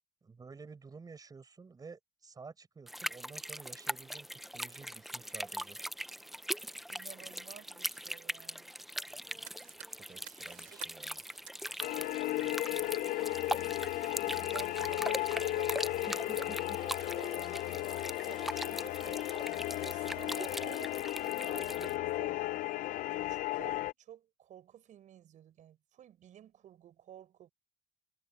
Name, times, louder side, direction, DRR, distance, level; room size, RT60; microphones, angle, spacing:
voice 1, 0.2-5.8 9.9-11.2 16.1-16.8, right 4 dB, 30° right, 5.3 m, -51 dB
sound 1, 2.9-22.0, equal, ahead, 0.4 m, -41 dB
voice 2, 6.9-8.7 10.3-10.4 10.7-10.8 12.9-13.2 14.2-19.2 19.8-22.4 23.1-27.5, right 10 dB, 65° right, 6.4 m, -53 dB
Fire, 9.1-20.6, right 13 dB, 85° right, 3.9 m, -58 dB
sound 2, 11.8-23.9, left 17 dB, 75° left, 0.4 m, -35 dB
cardioid pair, 120°, 14 cm